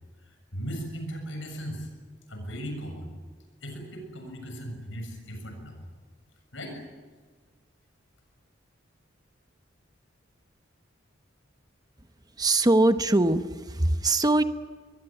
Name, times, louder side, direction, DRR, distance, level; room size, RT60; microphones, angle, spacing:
voice 1, 0.3-1.9 2.3-3.2 3.6-5.8 6.5-6.8, equal, 80° left, 4 dB, 6.9 m, -37 dB
voice 2, 12.4-14.4, right 2 dB, 20° right, 10 dB, 1.0 m, -22 dB
23.5 x 22.0 x 9.1 m, 1.5 s
head